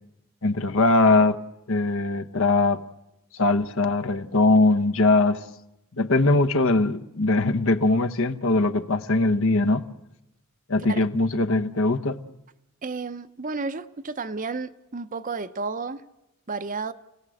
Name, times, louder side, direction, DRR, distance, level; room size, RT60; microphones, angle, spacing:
voice 1, 0.4-1.4 1.7-2.8 3.3-5.5 6.0-9.8 10.7-12.2, left 2 dB, 65° left, 1.1 m, -21 dB
voice 2, 12.8-16.0 16.5-16.9, right 4 dB, 35° right, 0.7 m, -32 dB
29.5 x 17.5 x 7.8 m
head